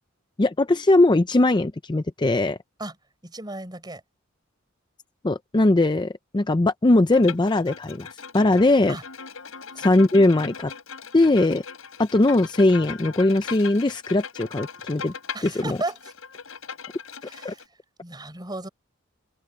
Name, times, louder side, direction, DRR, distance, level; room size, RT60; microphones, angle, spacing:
voice 1, 0.4-2.6 5.2-9.0 9.8-10.7 11.1-11.6 12.0-15.1 15.4-15.8 17.4-17.5, left 2 dB, 20° left, 0.5 m, -20 dB
voice 2, 3.2-4.0 8.9-9.0 9.7-9.9 15.3-16.0 17.2-17.6 18.0-18.7, right 2 dB, 20° right, 5.8 m, -34 dB
Bowed string instrument, 7.1-17.6, left 6 dB, 85° left, 5.4 m, -39 dB
head